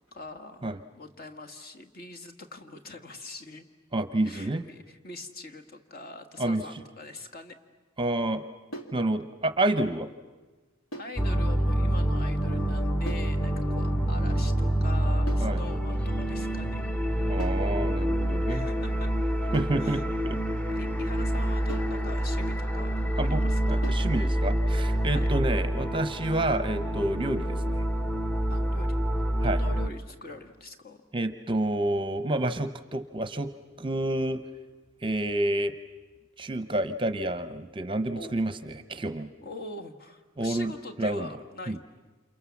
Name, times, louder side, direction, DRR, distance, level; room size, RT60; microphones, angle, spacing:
voice 1, 0.0-3.6 4.2-7.5 11.0-17.5 18.5-19.1 19.8-20.0 20.7-24.0 25.1-25.3 28.5-29.0 29.4-31.0 38.1-38.3 39.4-41.8, left 2 dB, 45° left, 5 dB, 1.7 m, -43 dB
voice 2, 3.9-4.7 6.4-6.6 8.0-8.4 8.9-10.1 15.4-15.6 17.2-18.7 19.5-20.4 23.2-27.8 29.4-29.6 31.1-33.5 33.8-34.4 35.0-35.7 36.4-39.3 40.4-40.7 41.0-41.3 41.7-41.8, right 1 dB, 25° right, 11 dB, 0.8 m, -29 dB
sound 1, 8.7-9.0 10.9-11.2 13.1-13.4 15.3-15.6 17.4-17.7 19.5-19.9 21.7-22.0 23.8-24.1, right 1 dB, 80° left, 2.6 m, -40 dB
sound 2, 11.2-29.9, right 1 dB, 5° left, 0.9 m, -27 dB
29.0 x 28.0 x 7.2 m, 1.3 s
head